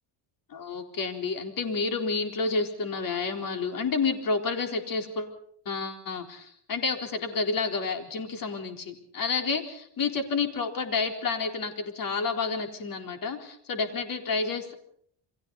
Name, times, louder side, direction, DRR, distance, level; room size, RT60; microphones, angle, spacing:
voice 1, 0.5-5.3 5.7-14.7, left 4 dB, 45° left, 5 dB, 4.1 m, -30 dB
29.0 x 23.5 x 4.1 m, 0.65 s
cardioid pair, 145°, 48 cm